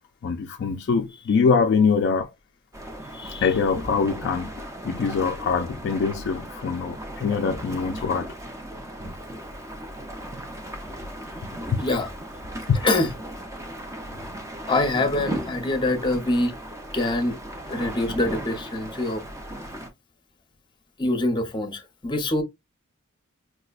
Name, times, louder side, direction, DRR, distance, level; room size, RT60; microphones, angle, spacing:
voice 1, 0.2-2.3 3.4-8.3 11.7-11.8 12.7-12.8, left 5 dB, 55° left, 0.3 m, -23 dB
sound 1, 2.7-19.9, right 1 dB, 15° right, 0.6 m, -37 dB
voice 2, 3.1-3.5 11.8-12.1 12.8-13.1 14.7-16.5 16.9-17.4 17.7-19.2 21.0-22.4, left 2 dB, 25° left, 0.7 m, -25 dB
4.7 x 2.1 x 2.3 m
head